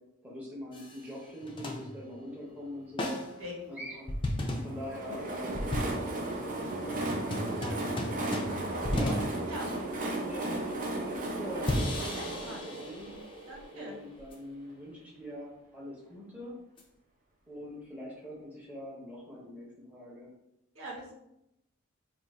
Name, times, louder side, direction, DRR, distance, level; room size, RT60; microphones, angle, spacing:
voice 1, 0.2-3.2 3.7-4.1 4.6-5.6 5.8-7.0 7.5-8.0 8.9-9.3 9.6-13.2 13.7-16.6 17.5-20.3, equal, 5° right, -6 dB, 0.8 m, -43 dB
sound 1, 0.7-1.1 1.4-2.3 3.0-3.4 4.1-10.3 11.7-13.5 14.3-14.4 16.8-16.9, left 1 dB, 25° left, 0.4 m, -36 dB
voice 2, 3.4-3.7 7.6-8.2 9.5-9.7 12.1-12.7 13.5-14.0 20.7-21.1, equal, 65° right, -2 dB, 1.0 m, -43 dB
Train, 4.6-14.3, right 2 dB, 40° right, 0.5 m, -35 dB
2.6 x 2.5 x 4.2 m, 0.84 s
head